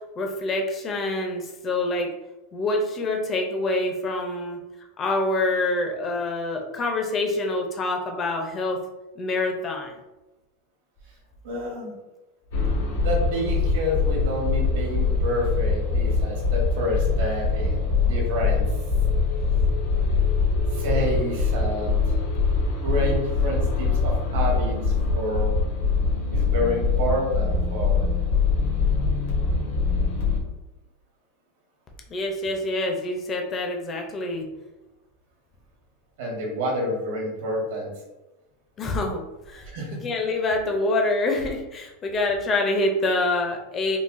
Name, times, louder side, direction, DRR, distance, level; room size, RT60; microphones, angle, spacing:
voice 1, 0.2-2.1 2.5-4.6 5.0-8.8 9.2-10.0 32.1-34.5 38.8-44.0, left 2 dB, 20° left, 2 dB, 0.5 m, -26 dB
voice 2, 11.4-11.9 13.0-18.6 20.7-22.0 22.8-25.5 26.3-28.1 36.2-37.9 39.7-40.0, equal, 70° right, -1 dB, 1.1 m, -28 dB
sound 1, 12.5-30.4, left 4 dB, 75° left, 1.1 m, -23 dB
3.8 x 2.2 x 2.5 m, 1.0 s
supercardioid pair, 160°, 0 cm